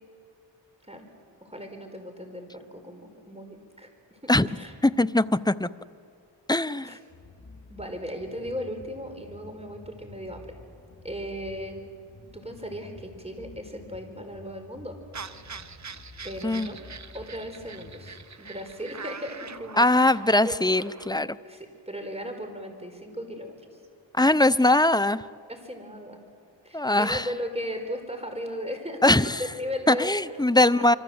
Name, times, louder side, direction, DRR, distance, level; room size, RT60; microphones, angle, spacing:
voice 1, 1.4-4.7 6.8-7.0 7.7-10.6 11.0-11.8 12.3-15.0 16.2-16.8 17.1-20.6 20.8-20.9 21.4-23.5 25.5-26.2 26.6-30.9, equal, 15° right, 5 dB, 4.7 m, -37 dB
voice 2, 4.8-5.7 6.5-7.0 16.4-16.7 19.8-21.3 24.1-25.2 26.7-27.3 29.0-29.4 29.9-31.0, left 2 dB, 10° left, 15 dB, 0.6 m, -21 dB
sound 1, 7.1-18.2, left 2 dB, 55° left, 5.4 m, -50 dB
sound 2, 15.1-21.1, right 5 dB, 40° right, 0.9 m, -43 dB
26.5 x 25.0 x 7.9 m, 2.3 s
cardioid pair, 45°, 45 cm